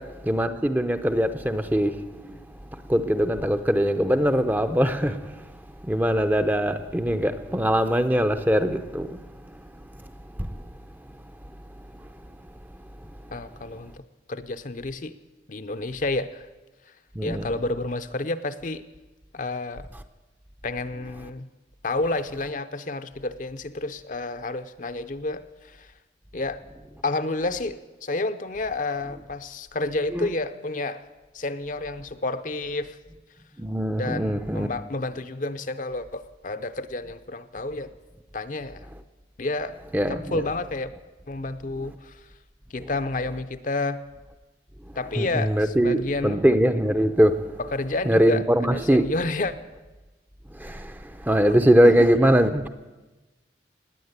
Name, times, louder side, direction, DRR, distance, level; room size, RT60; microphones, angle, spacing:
voice 1, 0.0-2.4 2.7-5.5 5.8-9.2 10.4-10.6 17.2-17.5 30.1-30.3 33.6-34.7 39.9-40.4 45.2-47.6 48.1-49.1 50.6-52.7, equal, 10° right, 0.6 m, -22 dB
voice 2, 13.3-14.0 14.3-15.1 15.5-16.5 17.2-18.8 19.3-19.9 20.6-21.5 21.8-25.9 26.3-26.6 27.0-31.0 31.3-33.0 34.0-37.9 38.3-38.9 39.4-39.8 40.1-40.9 41.3-42.2 42.7-44.0 45.0-46.4 47.7-49.5 51.5-51.6 51.8-51.9, left 2 dB, 45° left, 0.6 m, -30 dB
19.0 x 9.5 x 8.1 m
head